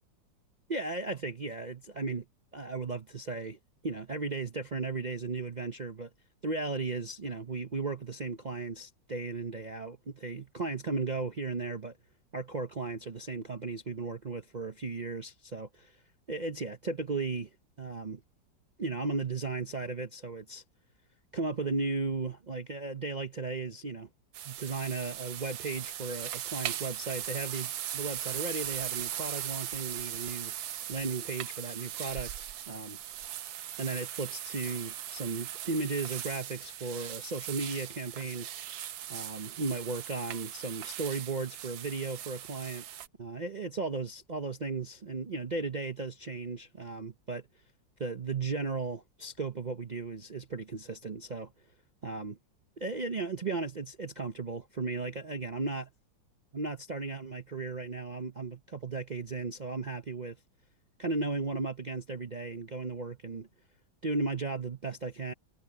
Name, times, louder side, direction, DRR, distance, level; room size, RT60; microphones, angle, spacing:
voice 1, 0.7-2.2 2.5-6.1 6.4-12.0 12.3-16.0 16.3-17.5 17.8-18.2 18.8-20.6 21.3-24.1 24.5-30.5 30.9-33.0 33.8-38.5 39.1-42.8 43.2-47.4 48.0-51.5 52.0-52.4 52.8-55.9 56.5-60.4 61.0-63.5 64.0-65.3, right 3 dB, 55° right, 0.5 m, -35 dB
sound 1, 24.3-43.1, right 11 dB, 85° right, 1.6 m, -39 dB
omnidirectional pair, 2.0 m